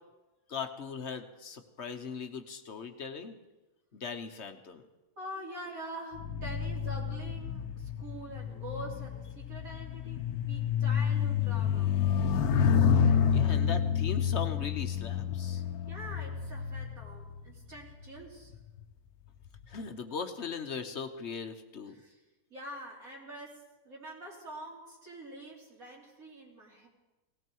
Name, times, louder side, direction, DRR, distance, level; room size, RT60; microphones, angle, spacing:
voice 1, 0.5-3.4 3.9-4.8 13.3-15.6 19.7-22.0, left 6 dB, 50° left, 7 dB, 1.2 m, -39 dB
voice 2, 5.2-11.9 15.9-18.5 21.9-22.2 22.5-26.9, right 1 dB, 65° right, -3 dB, 3.6 m, -45 dB
sound 1, 6.1-17.8 18.5-18.8, left 7 dB, 80° left, 1.3 m, -29 dB
18.0 x 17.0 x 4.6 m, 1.1 s
omnidirectional pair, 1.6 m